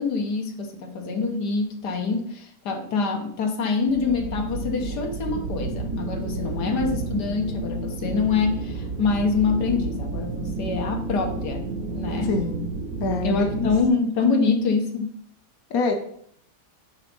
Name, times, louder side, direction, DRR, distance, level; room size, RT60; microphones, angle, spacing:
voice 1, 0.0-12.4 13.2-15.2, left 4 dB, 85° left, 3 dB, 1.7 m, -25 dB
sound 1, 3.9-13.9, right 3 dB, 65° right, 1.2 m, -31 dB
voice 2, 12.3-12.7 13.0-13.7 15.7-15.9, left 3 dB, 60° left, 4 dB, 1.3 m, -25 dB
8.9 x 3.5 x 5.4 m, 0.64 s
omnidirectional pair, 1.7 m